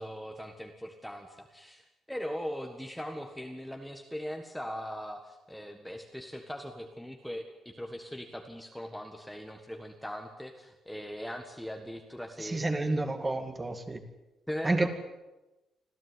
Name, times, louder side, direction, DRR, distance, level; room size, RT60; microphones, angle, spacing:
voice 1, 0.0-12.9 14.5-14.9, equal, ahead, 3 dB, 1.6 m, -40 dB
voice 2, 12.4-14.0 14.6-14.9, right 2 dB, 20° right, 7 dB, 2.3 m, -29 dB
26.0 x 15.0 x 9.6 m, 1.0 s
cardioid pair, 145°, 0 cm